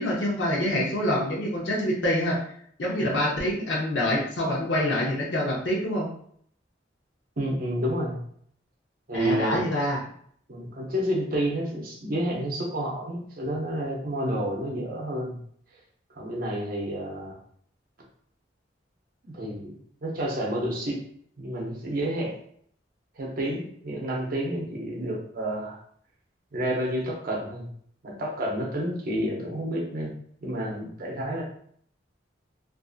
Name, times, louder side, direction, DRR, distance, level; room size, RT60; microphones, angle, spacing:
voice 1, 0.0-2.4 2.8-6.1 9.1-10.0, left 1 dB, 70° left, -3 dB, 0.6 m, -26 dB
voice 2, 7.4-8.2 9.1-9.6 10.5-15.4 16.2-17.4 19.2-19.7 20.0-21.0 21.4-22.4 23.2-25.8 26.5-27.7 28.0-30.1 30.4-31.4, right 1 dB, 50° right, -1 dB, 0.6 m, -30 dB
2.5 x 2.5 x 2.4 m, 0.63 s
head